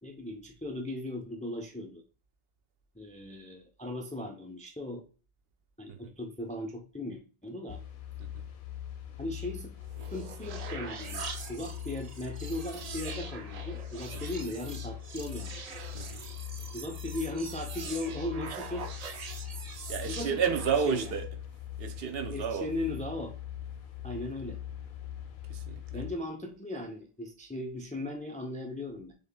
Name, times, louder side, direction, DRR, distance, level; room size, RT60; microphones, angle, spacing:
voice 1, 0.0-2.0 2.9-5.0 5.8-7.8 9.2-9.7 10.0-15.8 16.7-18.8 20.1-20.5 20.9-21.1 22.3-23.3 24.0-24.6 25.9-29.1, left 1 dB, 15° left, 0.3 m, -38 dB
sound 1, 7.7-26.1, left 11 dB, 60° left, 0.7 m, -42 dB
sound 2, 9.8-21.2, right 5 dB, 50° right, 0.5 m, -43 dB
voice 2, 15.9-16.3 18.5-18.7 19.9-21.4 21.8-22.7 25.5-26.0, right 7 dB, 70° right, 0.8 m, -32 dB
6.5 x 2.8 x 2.2 m
omnidirectional pair, 1.0 m